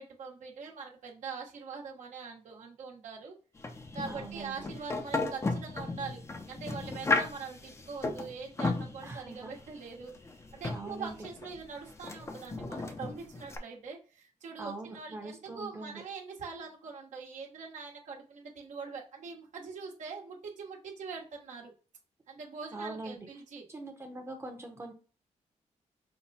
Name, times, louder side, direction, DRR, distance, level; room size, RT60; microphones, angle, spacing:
voice 1, 0.0-3.3 3.9-21.7 22.3-23.6, right 5 dB, 70° right, -1 dB, 1.2 m, -43 dB
sound 1, 3.6-13.6, left 3 dB, 20° left, 0.5 m, -35 dB
voice 2, 4.1-4.6 9.0-9.5 10.7-11.2 14.6-16.0 22.7-23.3 23.7-24.9, right 2 dB, 20° right, 3 dB, 0.8 m, -42 dB
5.7 x 2.2 x 4.1 m, 0.37 s
wide cardioid pair, 165°, 13 cm